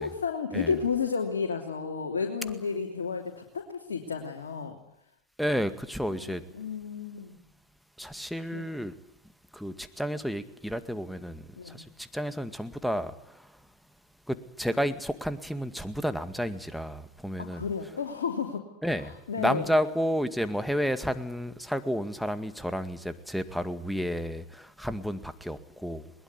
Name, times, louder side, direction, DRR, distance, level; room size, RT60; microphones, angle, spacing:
voice 1, 0.0-4.8 6.1-7.4 8.5-8.7 11.6-11.8 17.4-18.7 19.0-19.7, left 6 dB, 80° left, 3.1 m, -32 dB
voice 2, 5.4-6.4 8.0-8.9 9.5-13.6 14.3-17.7 18.8-26.1, equal, ahead, 2.0 m, -31 dB
21.5 x 20.5 x 9.7 m
hypercardioid pair, 90°, 0 cm